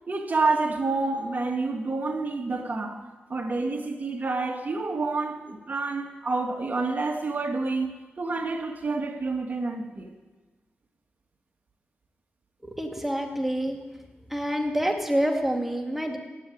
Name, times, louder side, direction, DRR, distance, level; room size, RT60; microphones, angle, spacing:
voice 1, 0.1-3.0 3.3-10.1, right 3 dB, 45° right, 2.2 m, -28 dB
voice 2, 12.6-13.8 14.3-16.2, equal, 5° right, 2.4 m, -27 dB
17.0 x 7.6 x 8.8 m
cardioid pair, 65°, 4 cm